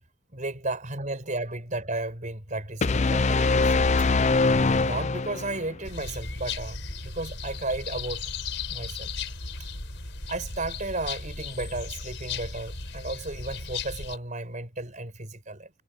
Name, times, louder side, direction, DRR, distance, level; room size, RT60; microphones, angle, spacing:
voice 1, 0.3-3.8 4.8-8.2 8.7-9.1 10.3-15.7, right 2 dB, 40° right, 5.8 m, -34 dB
sound 1, 2.8-5.7, left 3 dB, 35° left, 0.5 m, -22 dB
sound 2, 5.8-14.2, left 4 dB, 65° left, 6.7 m, -36 dB
head